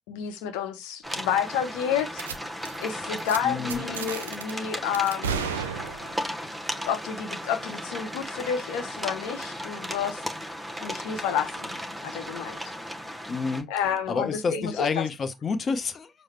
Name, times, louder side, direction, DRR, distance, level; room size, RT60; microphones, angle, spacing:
voice 1, 0.1-2.2 2.8-5.5 6.8-10.2 10.8-11.7 12.0-12.6 13.7-15.1, left 8 dB, 70° left, 0.8 m, -30 dB
sound 1, 1.0-13.6, equal, 5° right, 0.9 m, -36 dB
sound 2, 2.2-2.4 2.6-2.9 3.2-3.4 3.7-4.5 4.9-6.3, right 6 dB, 80° right, 0.4 m, -33 dB
voice 2, 3.4-3.8 13.3-13.7 14.1-16.1, left 4 dB, 40° left, 0.8 m, -28 dB
6.4 x 2.2 x 3.2 m
figure-of-eight pair, 45°, 0 cm